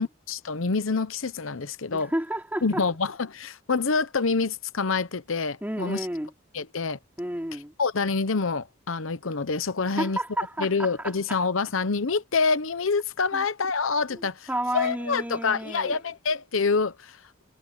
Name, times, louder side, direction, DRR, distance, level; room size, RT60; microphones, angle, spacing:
voice 1, 0.0-2.1 2.6-6.1 6.5-7.0 7.8-10.2 10.6-14.5 14.7-17.3, left 4 dB, 75° left, 0.9 m, -26 dB
voice 2, 1.9-2.8 5.6-6.3 7.2-7.8 9.9-10.9 13.3-13.4 14.1-16.0, right 1 dB, 10° right, 3.5 m, -31 dB
head